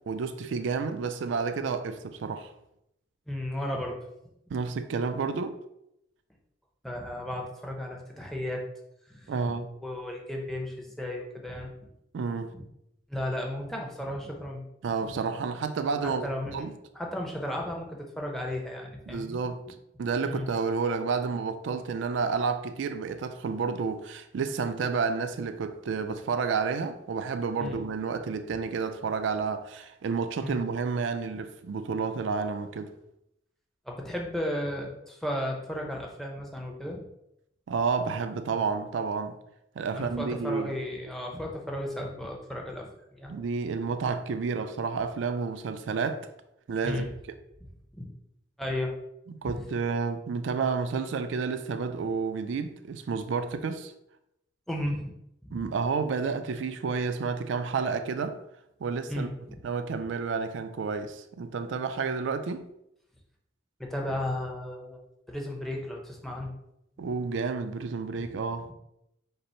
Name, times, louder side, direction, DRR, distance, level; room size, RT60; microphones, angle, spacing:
voice 1, 0.1-2.5 4.5-5.6 9.3-9.7 12.1-12.5 14.8-16.7 19.1-19.6 20.0-32.9 37.7-39.4 39.8-40.7 43.3-46.3 46.7-47.1 49.4-53.9 55.5-58.4 58.8-59.3 59.6-62.6 67.0-68.7, right 5 dB, 75° right, 0.3 m, -30 dB
voice 2, 3.3-4.0 6.8-8.6 9.1-9.5 9.8-11.7 12.5-12.6 13.1-14.6 15.0-15.1 16.0-16.6 16.9-19.4 20.3-20.4 27.6-27.8 30.4-30.6 31.3-31.4 33.9-37.0 39.9-43.3 46.8-47.1 47.9-48.1 48.6-48.9 49.4-49.6 54.7-55.1 55.4-55.7 59.1-59.6 63.8-65.0 65.3-66.5 67.0-67.1, left 1 dB, ahead, 0.6 m, -34 dB
5.3 x 2.0 x 4.3 m
head